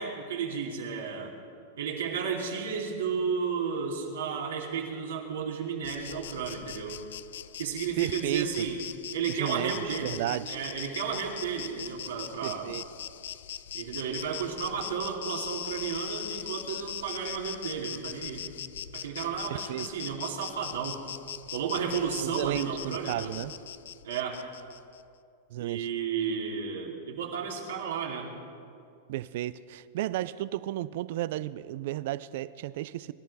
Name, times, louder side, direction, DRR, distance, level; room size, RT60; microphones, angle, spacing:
voice 1, 0.0-1.3 1.8-7.0 7.6-8.8 9.1-10.1 10.5-12.7 13.7-18.5 18.9-21.0 21.5-23.3 24.0-24.4 25.6-28.3, right 6 dB, 85° right, -1 dB, 2.6 m, -33 dB
Insect, 5.8-25.0, left 10 dB, 80° left, 0.4 m, -41 dB
voice 2, 8.0-8.7 9.3-10.6 12.4-12.8 19.5-19.9 22.2-23.5 25.5-25.9 29.1-33.1, right 15 dB, 65° right, 17 dB, 0.5 m, -33 dB
23.5 x 11.5 x 4.2 m, 2.5 s
hypercardioid pair, 115°, 0 cm